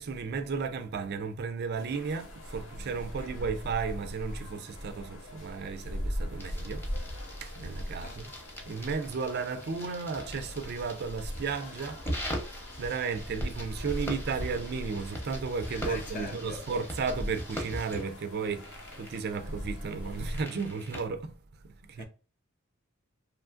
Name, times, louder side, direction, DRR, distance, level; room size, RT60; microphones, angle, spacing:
voice 1, 0.0-8.3 8.7-12.1 12.8-21.4 21.6-22.0, right 5 dB, 50° right, 0.4 m, -34 dB
sound 1, 1.7-20.4, equal, 70° left, 0.9 m, -40 dB
sound 2, 6.4-21.1, equal, 10° left, 0.7 m, -42 dB
voice 2, 15.7-16.7 21.9-22.0, left 3 dB, 40° left, 0.4 m, -42 dB
2.8 x 2.5 x 2.3 m
head